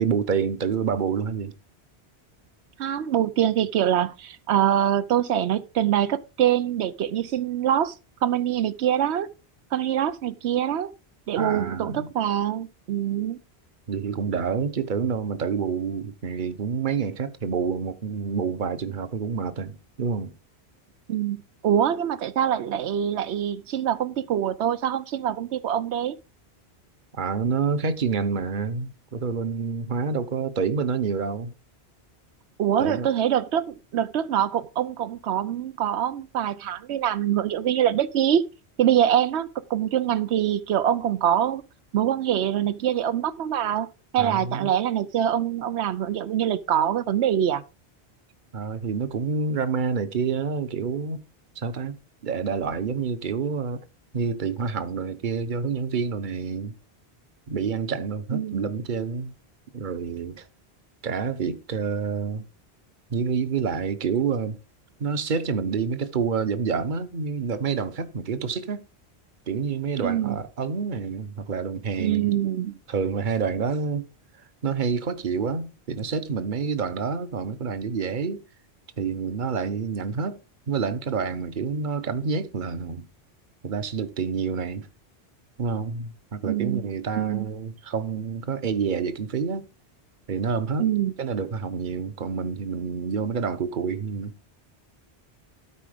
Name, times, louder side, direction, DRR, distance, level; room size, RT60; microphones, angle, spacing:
voice 1, 0.0-1.5 11.4-12.1 13.9-20.4 27.1-31.5 32.8-33.1 44.2-44.7 48.5-51.2 51.6-52.0 52.2-53.8 54.1-56.7 57.5-59.3 59.7-60.5 61.0-62.4 63.1-64.6 65.0-68.8 69.5-72.3 72.9-74.1 74.6-78.4 79.0-80.4 80.7-83.1 83.6-84.9 85.6-89.6 90.3-90.9 91.2-94.3, right 5 dB, 50° right, 1.1 m, -28 dB
voice 2, 2.8-9.3 9.7-10.9 11.3-13.4 21.1-26.2 32.6-38.4 38.8-41.6 41.9-43.9 44.1-47.6 58.3-58.7 70.0-70.4 72.0-72.8 86.4-87.5 90.8-91.1, right 10 dB, 90° right, 1.0 m, -24 dB
13.0 x 4.8 x 5.0 m
omnidirectional pair, 1.1 m